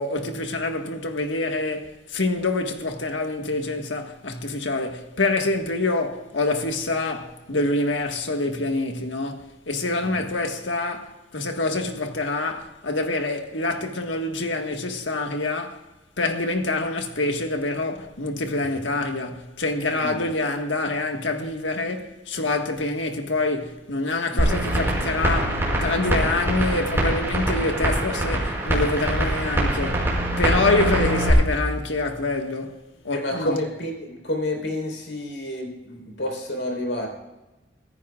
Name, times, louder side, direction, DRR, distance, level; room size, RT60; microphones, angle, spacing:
voice 1, 0.0-15.8 16.2-30.1 30.4-33.6, left 2 dB, 90° left, 1.6 m, -26 dB
sound 1, 24.4-31.3, right 1 dB, 15° right, 5.6 m, -24 dB
voice 2, 33.1-37.1, left 1 dB, 75° left, 4.1 m, -29 dB
24.5 x 14.5 x 2.4 m
head